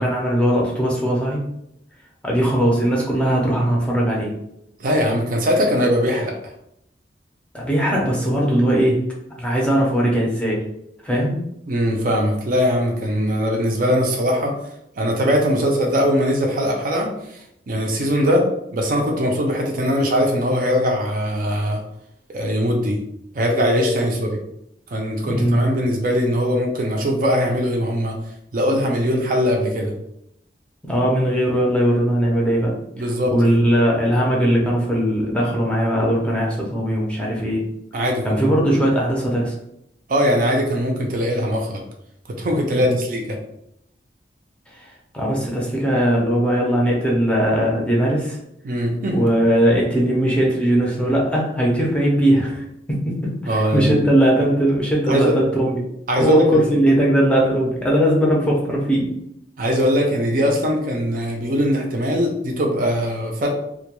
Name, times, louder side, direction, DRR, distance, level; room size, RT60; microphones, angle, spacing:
voice 1, 0.0-1.4 2.2-4.3 7.5-9.0 9.4-10.6 11.0-11.4 25.3-25.6 30.8-37.6 38.2-39.6 42.7-43.0 44.7-48.4 49.1-55.8 56.2-59.1, equal, 5° left, -3 dB, 0.5 m, -19 dB
voice 2, 4.8-6.3 11.7-14.6 15.0-17.1 17.7-18.5 18.7-21.8 22.3-23.0 23.3-24.4 24.9-28.2 28.5-29.9 32.9-33.3 37.9-38.4 40.1-41.8 42.3-43.4 48.6-49.2 53.5-54.0 55.1-55.3 56.1-56.6 59.6-63.5, equal, 50° right, 1 dB, 0.4 m, -20 dB
2.2 x 2.2 x 2.9 m, 0.79 s
head